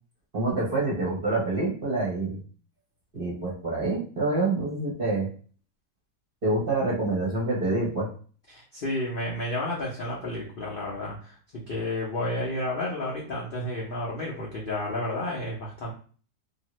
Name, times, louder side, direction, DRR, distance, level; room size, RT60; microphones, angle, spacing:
voice 1, 0.3-2.4 3.1-5.3 6.4-8.1, right 2 dB, 40° right, -4 dB, 0.9 m, -26 dB
voice 2, 8.5-15.9, left 1 dB, 60° left, -4 dB, 0.5 m, -31 dB
2.7 x 2.5 x 3.0 m, 0.42 s
omnidirectional pair, 1.7 m